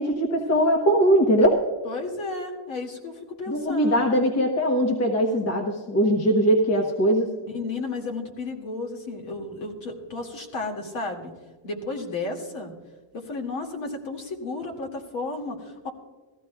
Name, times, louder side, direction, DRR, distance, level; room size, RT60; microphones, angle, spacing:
voice 1, 0.0-1.6 3.5-7.3, equal, 30° left, 2 dB, 1.1 m, -21 dB
voice 2, 1.9-4.0 7.4-11.3 11.6-12.7 13.1-15.9, left 3 dB, 70° left, 2 dB, 2.3 m, -33 dB
18.5 x 14.5 x 2.3 m, 1.4 s
cardioid pair, 170°, 48 cm